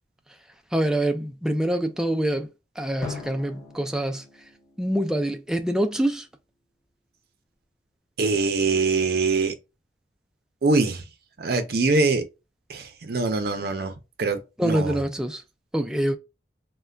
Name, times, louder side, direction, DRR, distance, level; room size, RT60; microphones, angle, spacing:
voice 1, 0.7-2.5 2.8-4.2 4.8-6.2 14.6-15.4 15.7-16.2, right 1 dB, 5° right, 0.3 m, -25 dB
Drum, 3.0-5.9, left 4 dB, 15° left, 1.8 m, -41 dB
voice 2, 8.2-9.5 10.6-11.0 11.4-12.3 12.7-15.0, right 3 dB, 60° right, 0.5 m, -23 dB
3.3 x 2.2 x 2.3 m
head